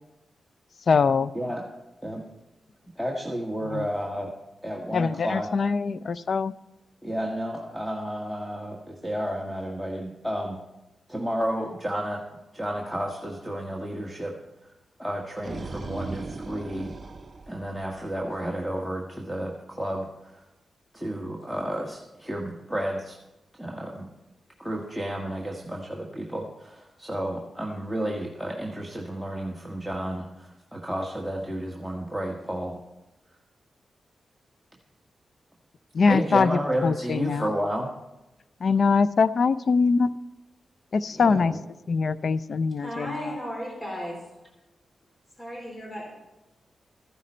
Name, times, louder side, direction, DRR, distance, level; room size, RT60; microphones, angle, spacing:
voice 1, 0.9-1.3 3.6-3.9 4.9-6.5 35.9-37.5 38.6-40.2 40.9-41.5 41.9-43.4, left 5 dB, 60° left, 17 dB, 0.4 m, -23 dB
voice 2, 3.0-4.3 4.6-5.5 7.0-10.6 11.1-12.2 12.5-14.3 15.0-16.9 17.5-20.1 20.9-23.2 23.6-24.1 24.6-32.8 36.1-37.9 41.1-41.4, equal, ahead, 0 dB, 1.6 m, -31 dB
sound 1, 15.2-18.3, right 3 dB, 40° right, 1.1 m, -38 dB
voice 3, 42.8-44.2 45.4-46.1, equal, 25° left, -2 dB, 4.5 m, -35 dB
14.0 x 11.0 x 4.4 m, 0.99 s
cardioid pair, 75°, 0 cm